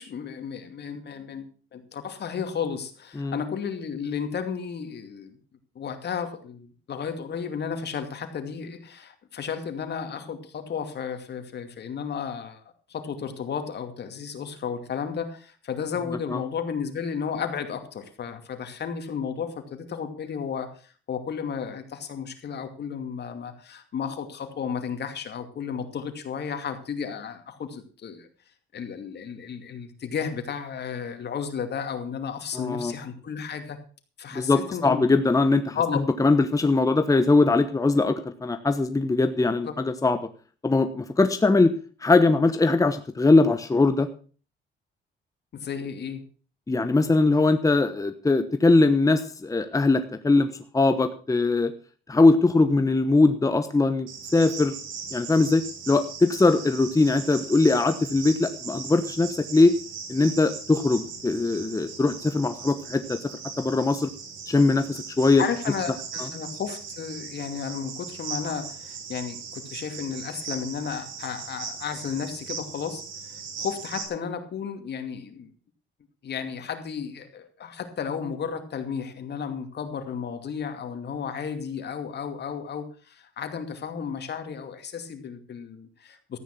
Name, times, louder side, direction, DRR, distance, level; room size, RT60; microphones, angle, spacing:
voice 1, 0.0-5.4 5.7-12.6 12.9-28.3 28.7-33.8 34.2-35.0 35.7-36.0 39.7-39.8 45.5-46.2 65.4-73.0 73.3-75.5 76.2-86.4, left 7 dB, 60° left, 8 dB, 2.5 m, -33 dB
voice 2, 32.5-32.9 34.3-40.2 40.6-41.7 42.0-44.1 46.7-51.7 52.1-54.7 55.1-59.7 60.1-63.3 63.6-64.1 64.5-65.4 66.2-66.3, left 3 dB, 15° left, 9 dB, 1.1 m, -21 dB
Cricket, 54.1-74.0, right 6 dB, 85° right, 3.9 m, -39 dB
14.0 x 9.5 x 6.0 m, 0.39 s
cardioid pair, 90°, 20 cm